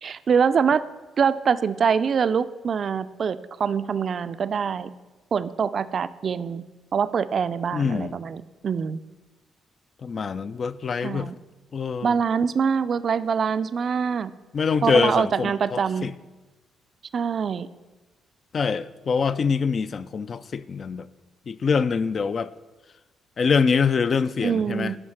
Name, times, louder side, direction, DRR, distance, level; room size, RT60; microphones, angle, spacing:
voice 1, 0.0-0.8 1.2-4.9 5.3-6.6 6.9-9.0 11.0-11.4 12.0-14.3 14.8-16.1 17.1-17.7 24.4-25.0, right 6 dB, 45° right, 0.4 m, -24 dB
voice 2, 7.7-8.1 10.0-11.3 11.7-12.1 14.5-16.1 18.5-21.1 21.5-22.5 23.4-24.9, left 5 dB, 40° left, 0.3 m, -24 dB
11.0 x 5.2 x 5.7 m
cardioid pair, 125°, 0 cm